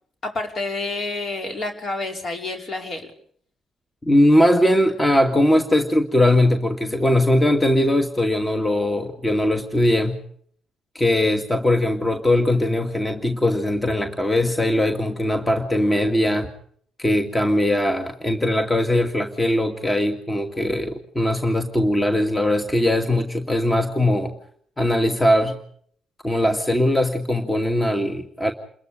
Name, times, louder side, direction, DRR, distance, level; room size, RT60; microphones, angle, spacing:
voice 1, 0.2-3.1, left 2 dB, 55° left, 3 dB, 5.4 m, -29 dB
voice 2, 4.0-10.2 10.9-16.5 17.0-24.3 24.8-25.6 26.2-28.5, left 1 dB, 20° left, 5 dB, 2.3 m, -20 dB
29.0 x 21.5 x 5.2 m, 0.63 s
hypercardioid pair, 50°, 0 cm